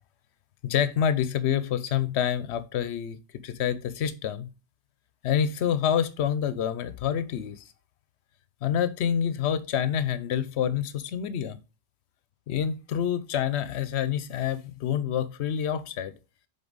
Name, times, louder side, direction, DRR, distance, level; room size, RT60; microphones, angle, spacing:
voice 1, 0.6-3.2 3.4-4.5 5.2-7.6 8.6-11.6 12.5-16.1, left 9 dB, 80° left, 0.9 m, -27 dB
6.9 x 3.9 x 4.0 m
omnidirectional pair, 1.1 m